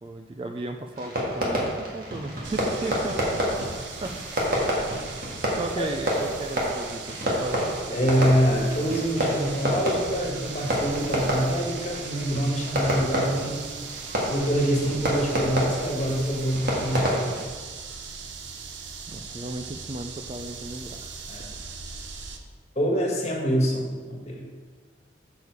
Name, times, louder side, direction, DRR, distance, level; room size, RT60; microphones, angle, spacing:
voice 1, 0.0-3.2 4.0-4.1 5.5-8.4 19.1-21.1, right 2 dB, 30° right, 5 dB, 0.3 m, -35 dB
Fireworks, 0.9-17.4, equal, 50° right, 1.7 m, -29 dB
sound 1, 2.4-22.4, right 5 dB, 80° right, 0.8 m, -39 dB
voice 2, 7.9-13.7 14.3-17.4 21.3-21.6 22.7-24.5, equal, 35° left, -2 dB, 1.5 m, -25 dB
7.0 x 6.6 x 4.6 m, 1.5 s
head